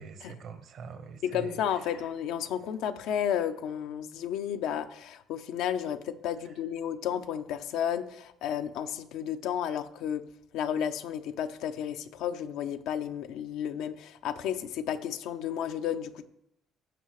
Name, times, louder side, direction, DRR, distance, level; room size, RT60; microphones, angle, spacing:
voice 1, 0.0-2.1 6.4-6.6, right 5 dB, 60° right, 9 dB, 1.1 m, -45 dB
voice 2, 1.2-10.2 10.5-16.3, left 9 dB, 75° left, 8 dB, 0.6 m, -32 dB
15.0 x 5.6 x 3.1 m, 0.79 s
supercardioid pair, 85°, 0 cm